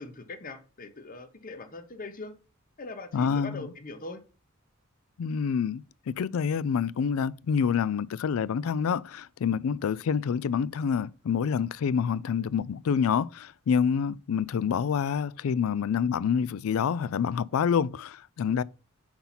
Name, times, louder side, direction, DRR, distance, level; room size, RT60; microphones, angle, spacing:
voice 1, 0.0-2.3 2.8-4.2, left 3 dB, 40° left, 0.9 m, -41 dB
voice 2, 3.1-3.7 5.2-18.6, left 7 dB, 75° left, 0.4 m, -27 dB
5.5 x 4.4 x 5.7 m
head